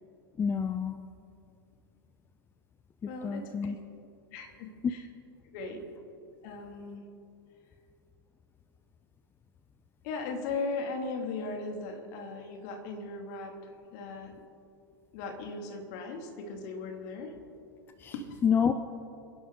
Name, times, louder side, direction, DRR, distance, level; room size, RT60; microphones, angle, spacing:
voice 1, 0.4-1.0 3.0-3.8 4.8-4.9 18.0-18.1 18.4-18.7, left 7 dB, 15° left, 10 dB, 0.6 m, -28 dB
voice 2, 3.1-3.8 4.3-5.1 5.4-5.9 6.4-7.1 10.0-14.3 15.1-17.4 18.1-18.2, left 3 dB, 50° left, 3 dB, 2.6 m, -38 dB
27.0 x 11.0 x 3.9 m, 2.7 s
figure-of-eight pair, 100°, 13 cm